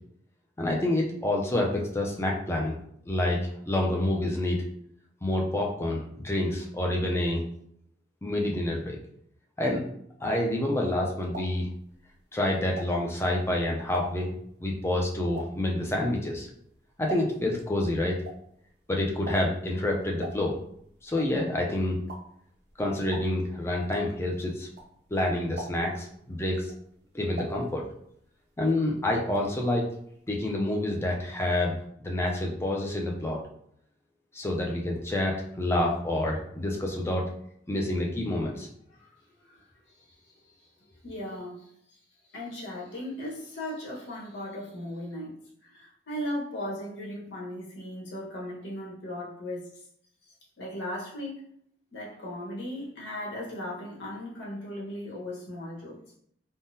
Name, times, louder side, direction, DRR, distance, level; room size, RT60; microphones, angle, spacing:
voice 1, 0.6-2.8 3.1-3.4 3.7-4.6 5.2-7.5 8.2-9.0 9.6-9.8 10.2-11.7 12.3-14.3 14.6-16.5 17.0-18.2 18.9-20.6 21.0-22.0 22.8-24.7 25.1-26.7 27.1-27.8 28.6-29.9 30.3-31.8 32.0-33.4 34.3-37.3 37.7-38.7, left 1 dB, 15° left, -1 dB, 0.4 m, -28 dB
sound 1, 10.8-13.3 13.7-17.6 17.9-25.2 25.5-26.1 26.5-28.3 28.6-29.6 29.9-30.0 30.3-30.4, right 1 dB, 65° right, 0.5 m, -42 dB
voice 2, 39.4-40.3 41.0-42.0 42.3-45.3 45.6-49.8 50.6-51.4 51.9-56.0, left 1 dB, 85° left, -5 dB, 1.2 m, -37 dB
3.6 x 2.1 x 2.7 m, 0.68 s
head